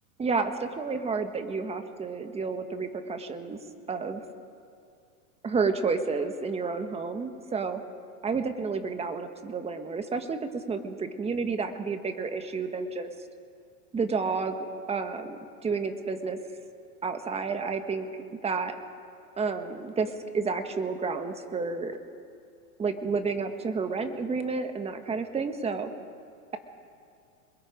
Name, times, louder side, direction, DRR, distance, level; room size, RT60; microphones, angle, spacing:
voice 1, 0.2-3.6 3.9-4.2 5.4-7.8 8.2-13.1 13.9-16.4 17.0-18.1 18.4-18.8 19.4-22.0 22.8-25.9, right 4 dB, 15° right, 7 dB, 1.6 m, -30 dB
27.0 x 21.5 x 5.2 m, 2.4 s
supercardioid pair, 130°, 44 cm